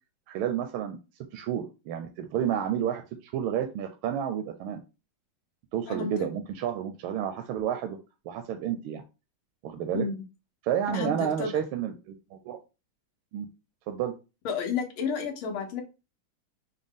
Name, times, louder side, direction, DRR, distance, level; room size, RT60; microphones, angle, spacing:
voice 1, 0.3-1.0 1.3-4.8 5.7-8.0 8.3-9.0 9.6-10.1 10.6-12.6 13.3-13.5 13.9-14.2, right 9 dB, 85° right, 7 dB, 1.4 m, -30 dB
voice 2, 10.9-11.5 14.4-15.8, left 5 dB, 85° left, 3 dB, 1.7 m, -31 dB
5.1 x 2.1 x 3.5 m, 0.29 s
omnidirectional pair, 2.2 m